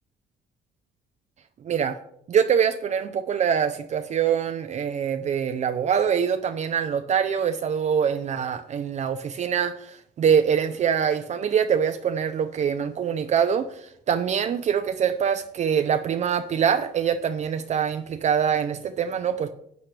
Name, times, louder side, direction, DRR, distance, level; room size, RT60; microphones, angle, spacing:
voice 1, 1.6-2.0 2.3-19.5, right 7 dB, 45° right, 0.6 m, -24 dB
11.5 x 8.2 x 3.3 m
cardioid pair, 110°, 17 cm